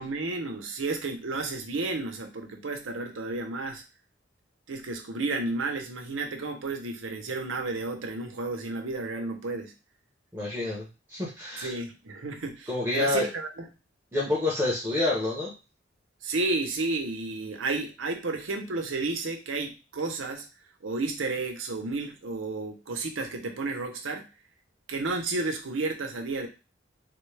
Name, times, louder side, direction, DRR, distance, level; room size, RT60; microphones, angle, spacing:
voice 1, 0.0-3.8 4.7-9.7 11.6-13.7 16.2-20.4 20.8-24.3 24.9-26.5, right 3 dB, 90° right, 4 dB, 0.7 m, -32 dB
voice 2, 10.3-11.7 12.7-13.3 14.1-15.5, left 2 dB, 10° right, -5 dB, 0.8 m, -28 dB
3.5 x 2.3 x 3.2 m, 0.29 s
head